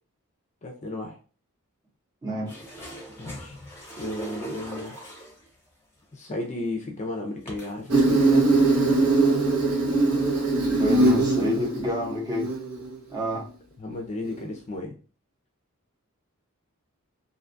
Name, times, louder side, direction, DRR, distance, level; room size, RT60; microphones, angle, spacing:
voice 1, 0.6-1.2 3.2-3.5 4.0-5.0 6.1-8.5 13.8-15.0, left 2 dB, 35° left, 1 dB, 0.4 m, -34 dB
voice 2, 2.2-2.6 3.2-3.3 10.8-12.5 13.1-13.5, left 1 dB, 20° right, -2 dB, 0.7 m, -29 dB
sound 1, 2.5-5.5 6.4-6.5 7.5-8.0 8.6-8.7 9.1-9.5 10.2-10.3, right 1 dB, 10° left, 0.8 m, -39 dB
Insect, 7.9-12.9, right 2 dB, 85° right, 0.9 m, -21 dB
2.6 x 2.2 x 2.5 m, 0.37 s
head